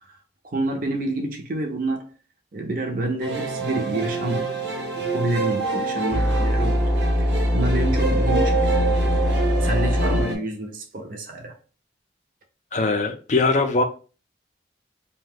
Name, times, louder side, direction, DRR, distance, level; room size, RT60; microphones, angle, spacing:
voice 1, 0.4-2.1 2.5-7.0 7.5-8.7 9.1-11.6, right 2 dB, 45° right, 0.6 m, -28 dB
sound 1, 3.2-10.4, right 3 dB, 75° right, 1.0 m, -27 dB
sound 2, 6.1-10.2, equal, 15° left, 0.7 m, -22 dB
voice 2, 12.7-13.8, left 3 dB, 40° left, 0.4 m, -21 dB
2.6 x 2.2 x 3.5 m
head